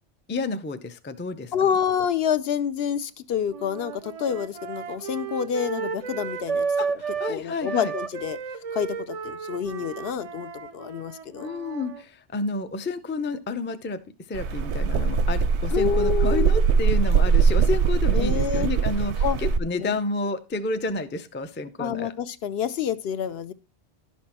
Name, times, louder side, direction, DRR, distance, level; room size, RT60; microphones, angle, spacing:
voice 1, 0.3-1.5 6.8-7.9 11.4-14.0 14.3-22.1, left 3 dB, 15° left, 0.3 m, -30 dB
voice 2, 1.5-7.0 7.3-8.4 8.7-11.5 15.7-16.6 18.1-18.7 19.2-19.4 19.8-20.0 21.8-23.5, left 8 dB, 70° left, 0.8 m, -28 dB
sound 1, 3.5-7.3 7.6-12.0, right 5 dB, 45° right, 0.5 m, -32 dB
sound 2, 14.3-19.6, right 5 dB, 90° right, 1.0 m, -21 dB
11.5 x 6.0 x 4.3 m
omnidirectional pair, 1.1 m